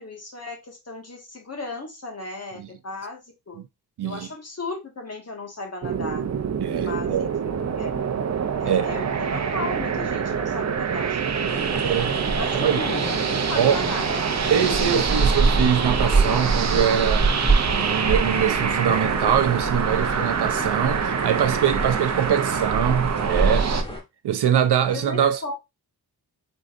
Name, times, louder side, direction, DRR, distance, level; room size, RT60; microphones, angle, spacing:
voice 1, 0.0-3.6 4.0-6.3 6.8-8.1 8.6-12.1 12.4-13.1 13.5-14.3 21.2-21.4 22.3-22.6 24.9-25.5, left 3 dB, 40° left, 1.7 m, -36 dB
sound 1, 5.8-23.8, right 7 dB, 45° right, 0.7 m, -26 dB
voice 2, 6.6-7.2 8.7-8.9 11.8-12.1 12.6-12.8 13.5-13.8 14.5-17.3 17.7-23.7 24.2-25.4, right 9 dB, 80° right, 0.7 m, -23 dB
sound 2, 11.5-24.0, right 2 dB, 15° left, 1.7 m, -26 dB
4.7 x 3.8 x 2.5 m
wide cardioid pair, 90°, 40 cm